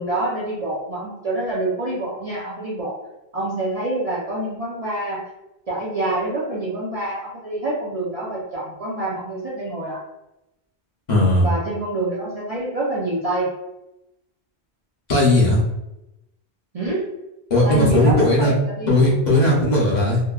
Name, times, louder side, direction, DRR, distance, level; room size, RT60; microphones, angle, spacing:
voice 1, 0.0-3.0 3.3-5.2 5.7-10.0 11.4-13.5 16.7-17.1 17.6-19.0, right 1 dB, 50° right, -7 dB, 0.5 m, -26 dB
voice 2, 11.1-11.5 15.1-15.6 17.5-18.5 18.9-20.2, left 1 dB, 45° left, -5 dB, 0.8 m, -17 dB
2.8 x 2.1 x 2.3 m, 0.91 s
omnidirectional pair, 1.1 m